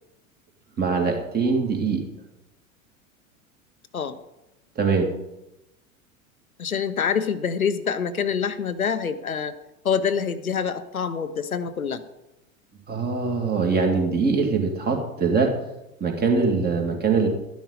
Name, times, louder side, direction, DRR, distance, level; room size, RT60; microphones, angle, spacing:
voice 1, 0.8-2.0 4.8-5.1 12.9-15.5 16.0-17.3, right 4 dB, 20° right, 3 dB, 2.4 m, -22 dB
voice 2, 6.6-9.5 9.8-12.0, left 7 dB, 80° left, 11 dB, 0.8 m, -26 dB
12.5 x 10.5 x 4.1 m, 0.92 s
figure-of-eight pair, 85°, 42 cm